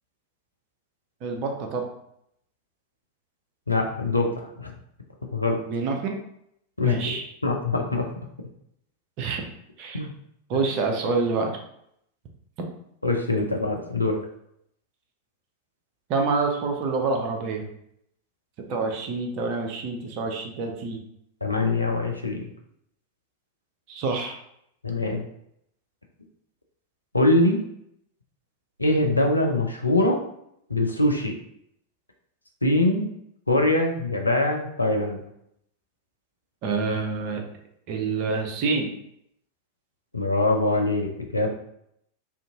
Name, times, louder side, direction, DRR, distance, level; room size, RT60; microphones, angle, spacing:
voice 1, 1.2-1.9 5.7-6.1 6.8-7.3 9.2-9.4 9.8-10.0 10.5-11.5 16.1-17.7 18.7-21.0 23.9-24.4 36.6-37.4 37.9-38.9, right 4 dB, 40° right, 3 dB, 0.6 m, -27 dB
voice 2, 3.7-4.7 5.3-5.6 6.8-7.1 7.4-8.1 9.9-10.1 13.0-14.2 21.4-22.4 24.8-25.2 27.1-27.6 28.8-30.2 30.7-31.3 32.6-33.1 33.5-35.2 40.1-41.5, left 2 dB, 85° left, 2 dB, 0.5 m, -23 dB
2.7 x 2.5 x 3.6 m, 0.73 s
figure-of-eight pair, 90°, 0 cm